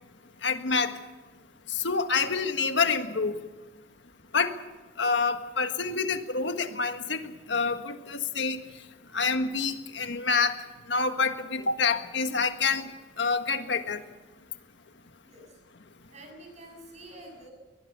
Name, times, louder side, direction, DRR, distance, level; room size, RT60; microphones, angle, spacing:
voice 1, 0.4-0.9 1.7-3.4 4.3-4.5 5.0-7.2 7.5-8.6 9.1-10.5 10.9-12.9 13.2-14.0, left 4 dB, 90° left, 7 dB, 1.6 m, -27 dB
voice 2, 15.2-15.6 16.1-17.5, right 1 dB, 40° right, 3 dB, 7.0 m, -48 dB
23.5 x 19.0 x 7.0 m, 1.2 s
head